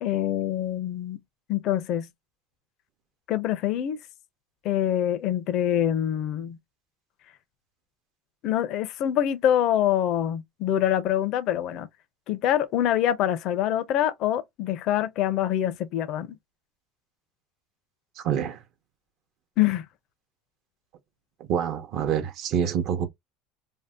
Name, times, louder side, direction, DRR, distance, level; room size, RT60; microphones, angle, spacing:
voice 1, 0.0-1.2 1.5-2.1 3.3-4.0 4.6-6.6 8.4-11.9 12.3-16.4 19.6-19.8, left 11 dB, 55° left, 0.5 m, -25 dB
voice 2, 18.2-18.6 21.5-23.1, right 8 dB, 55° right, 0.7 m, -26 dB
2.6 x 2.1 x 3.4 m
supercardioid pair, 130°, 0 cm